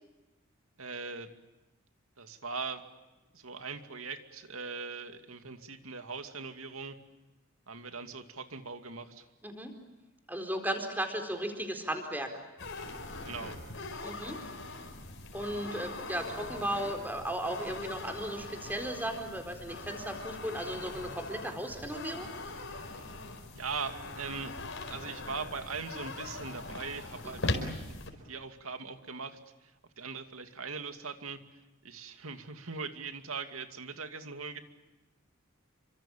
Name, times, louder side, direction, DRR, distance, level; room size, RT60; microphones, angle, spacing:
voice 1, 0.8-1.3 2.2-2.8 3.3-7.0 7.7-9.3 13.2-13.6 20.9-21.2 22.9-23.0 23.5-24.5 24.9-29.7 30.0-31.4 31.8-34.6, right 4 dB, 75° right, 7 dB, 2.5 m, -40 dB
voice 2, 10.3-12.3 14.0-14.4 15.3-22.3 27.2-27.5, right 1 dB, 10° right, 4 dB, 4.3 m, -36 dB
sound 1, 12.6-28.1, left 2 dB, 60° left, 4.7 m, -41 dB
29.0 x 25.0 x 7.3 m, 1.1 s
head